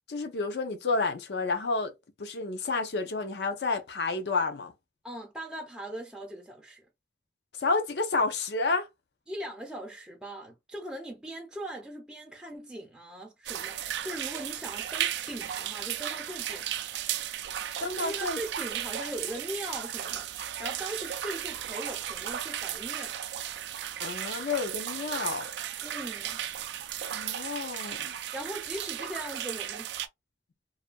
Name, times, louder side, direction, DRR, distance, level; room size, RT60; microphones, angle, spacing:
voice 1, 0.1-1.9 2.2-4.7 7.6-8.9 17.8-18.4 24.0-25.5 27.1-28.1, left 3 dB, 70° left, 0.6 m, -30 dB
voice 2, 5.0-6.8 9.3-16.7 17.8-23.1 25.8-26.4 28.3-29.9, right 1 dB, 5° right, 0.5 m, -40 dB
sound 1, 13.5-30.1, right 10 dB, 75° right, 0.3 m, -35 dB
2.6 x 2.4 x 2.2 m
head